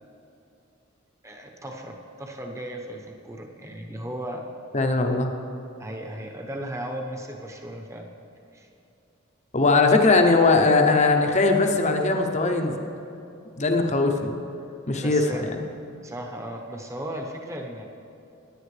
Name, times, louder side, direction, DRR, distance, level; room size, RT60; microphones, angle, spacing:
voice 1, 1.2-4.4 5.8-8.1 8.5-8.7 15.0-15.5 16.0-17.8, right 1 dB, 15° right, 1 dB, 1.0 m, -36 dB
voice 2, 4.7-5.3 9.5-12.7 13.6-14.3 14.9-15.6, left 3 dB, 35° left, 4 dB, 0.8 m, -20 dB
17.5 x 10.0 x 3.3 m, 2.8 s
head